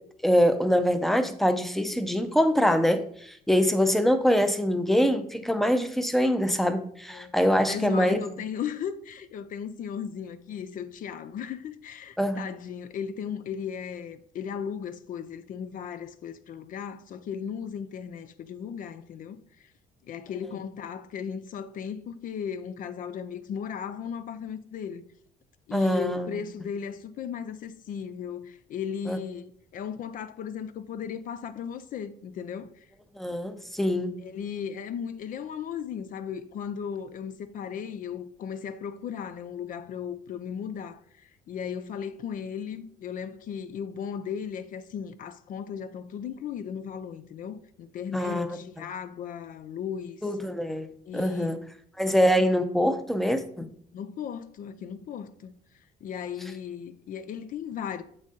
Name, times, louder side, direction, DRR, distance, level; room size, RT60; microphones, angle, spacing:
voice 1, 0.2-8.2 12.2-12.4 20.4-20.6 25.7-26.4 29.1-29.2 33.2-34.2 48.1-48.8 50.2-50.9 51.1-51.6 52.0-53.7, equal, ahead, 0.6 m, -24 dB
voice 2, 7.7-19.7 20.0-25.0 25.7-32.7 34.2-50.2 51.1-51.6 52.4-52.5 53.9-55.5 56.0-58.0, left 7 dB, 55° left, 0.5 m, -36 dB
7.2 x 4.0 x 3.8 m
cardioid pair, 110°, 17 cm